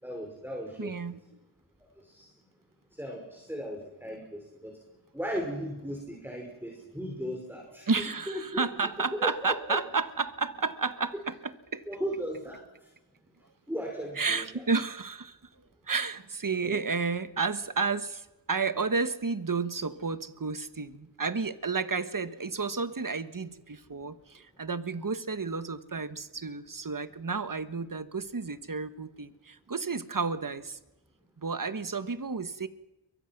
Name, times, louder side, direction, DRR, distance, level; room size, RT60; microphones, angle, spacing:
voice 1, 0.0-1.2 2.0-2.3 2.9-4.8 5.1-7.9 8.3-8.9 9.2-9.8 11.9-12.6 13.7-14.6 16.6-16.8, equal, 5° right, 2 dB, 5.5 m, -37 dB
voice 2, 0.8-1.2 7.9-11.8 14.2-15.4 15.9-30.8 31.4-32.7, right 4 dB, 40° right, 12 dB, 1.5 m, -31 dB
28.5 x 23.0 x 6.1 m, 1.0 s
cardioid pair, 45°, 49 cm